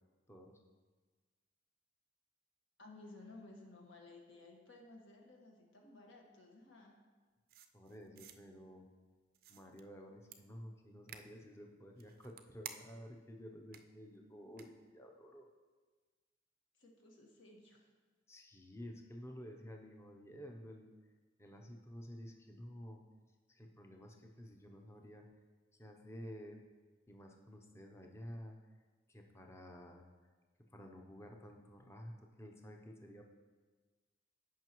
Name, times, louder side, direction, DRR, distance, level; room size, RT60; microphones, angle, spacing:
voice 1, 0.3-0.6 7.7-8.9 9.5-15.5 18.3-20.9 21.4-23.0 23.5-25.3 25.8-26.6 27.1-28.6 29.1-30.1 30.7-33.2, equal, 15° left, 2 dB, 0.6 m, -52 dB
voice 2, 2.8-6.9 16.7-17.9, left 2 dB, 75° left, -1 dB, 1.6 m, -57 dB
sound 1, 7.5-8.4 9.3-9.8 10.3-10.4 11.1-11.2 11.9-13.1 13.7-13.8 14.6-14.7, right 9 dB, 50° right, 0.5 m, -51 dB
15.0 x 5.5 x 3.0 m, 1.4 s
head